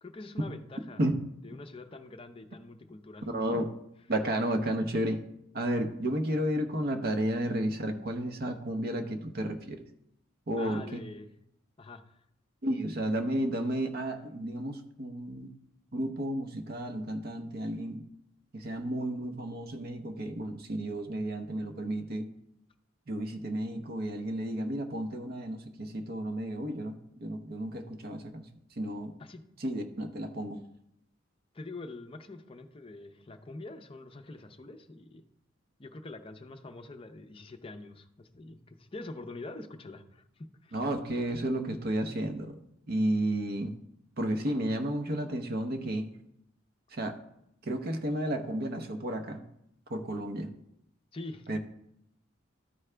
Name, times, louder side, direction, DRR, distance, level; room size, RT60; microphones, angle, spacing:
voice 1, 0.0-1.0 1.4-3.6 10.6-11.3 11.8-12.2 29.2-29.4 31.5-35.2 35.8-40.8 51.1-51.6, left 2 dB, 25° left, 7 dB, 0.6 m, -45 dB
voice 2, 3.3-3.7 4.1-5.2 5.5-9.8 10.5-11.0 12.6-15.5 15.9-18.0 18.5-22.3 23.1-28.5 28.8-29.1 29.6-30.6 40.7-42.6 42.9-43.7 44.2-46.1 46.9-47.2 47.6-49.4 49.9-50.5 51.5-51.6, right 1 dB, 50° right, 6 dB, 0.8 m, -32 dB
12.5 x 4.8 x 3.3 m, 0.77 s
head